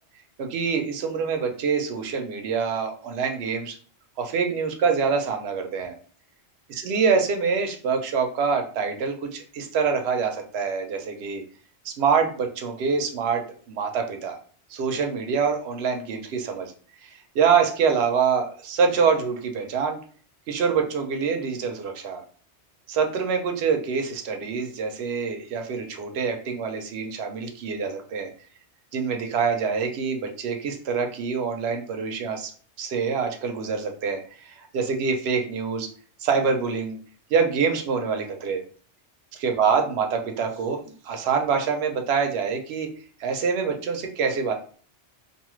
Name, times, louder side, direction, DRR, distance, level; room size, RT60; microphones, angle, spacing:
voice 1, 0.4-3.8 4.2-6.0 6.7-11.4 11.8-13.4 13.7-14.4 14.7-16.7 17.0-20.0 20.5-22.2 22.9-28.3 28.9-32.5 32.8-35.9 36.2-37.0 37.3-38.6 39.3-40.8 41.0-42.9 43.2-44.5, right 5 dB, 70° right, 5 dB, 0.8 m, -25 dB
2.6 x 2.4 x 3.0 m, 0.44 s
omnidirectional pair, 1.2 m